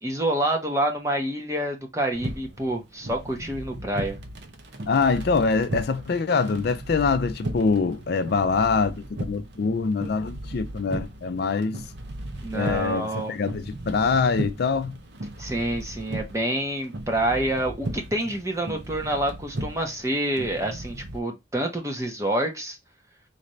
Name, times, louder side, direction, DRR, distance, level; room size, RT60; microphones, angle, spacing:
voice 1, 0.0-4.2 12.4-13.3 15.4-22.8, right 1 dB, 15° right, 1.0 m, -27 dB
sound 1, 2.1-21.2, right 1 dB, 60° right, 0.8 m, -36 dB
voice 2, 4.9-11.8 12.5-15.0, left 4 dB, 55° left, 0.4 m, -24 dB
4.1 x 2.6 x 3.1 m
head